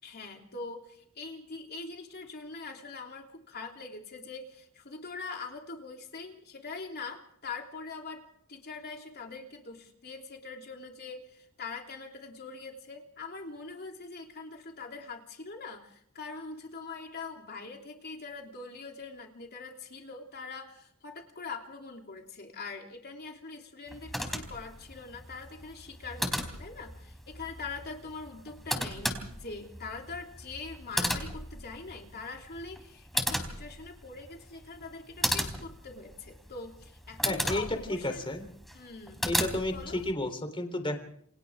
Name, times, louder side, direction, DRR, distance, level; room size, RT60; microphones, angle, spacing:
voice 1, 0.0-38.2 38.7-39.3 39.7-40.0, left 4 dB, 50° left, 2 dB, 3.2 m, -43 dB
sound 1, 23.9-40.1, equal, ahead, 4.1 m, -36 dB
voice 2, 37.2-38.5 39.3-41.0, left 1 dB, 25° left, 6 dB, 3.5 m, -32 dB
29.0 x 25.0 x 3.7 m, 0.67 s
head